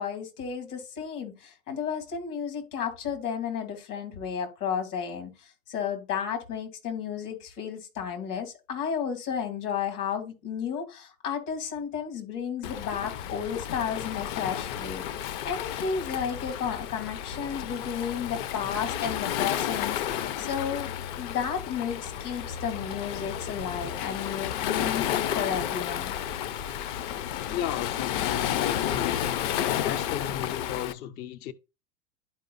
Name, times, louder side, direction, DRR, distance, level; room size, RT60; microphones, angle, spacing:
voice 1, 0.0-26.1, left 7 dB, 75° left, 3.0 m, -33 dB
Waves surf, 12.6-30.9, left 10 dB, 50° left, 0.7 m, -32 dB
voice 2, 27.5-29.3 29.7-31.5, left 10 dB, 25° left, 0.3 m, -34 dB
12.0 x 4.9 x 2.6 m
hypercardioid pair, 105°, 46 cm